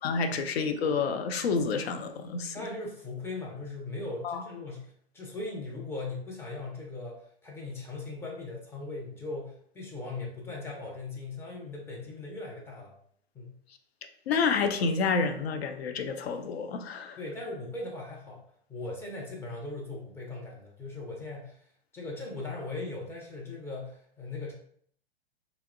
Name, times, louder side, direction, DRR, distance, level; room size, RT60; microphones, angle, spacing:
voice 1, 0.0-2.6 4.2-4.4 14.3-17.2, left 5 dB, 75° left, 8 dB, 0.4 m, -29 dB
voice 2, 2.5-12.9 13.3-13.6 17.2-18.4 18.7-21.6 21.9-24.5, left 2 dB, 10° left, -2 dB, 0.4 m, -39 dB
2.8 x 2.0 x 2.4 m, 0.62 s
hypercardioid pair, 110°, 32 cm